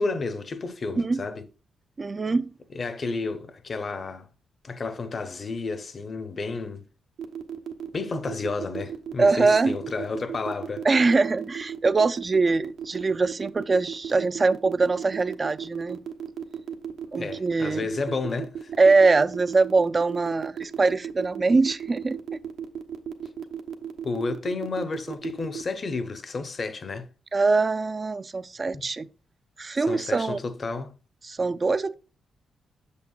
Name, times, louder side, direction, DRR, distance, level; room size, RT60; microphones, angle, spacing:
voice 1, 0.0-1.5 2.7-4.3 4.6-6.8 7.9-10.9 17.2-18.7 24.0-27.1 28.7-28.9 29.9-31.0, left 3 dB, 35° left, 0.8 m, -31 dB
voice 2, 2.0-2.5 9.2-9.8 10.8-16.0 17.1-17.9 18.8-22.4 27.3-29.1 29.6-30.4 31.2-31.9, right 3 dB, 25° right, 0.4 m, -23 dB
sound 1, 7.2-25.6, right 8 dB, 80° right, 0.8 m, -35 dB
8.4 x 6.8 x 2.3 m
wide cardioid pair, 150°, 0 cm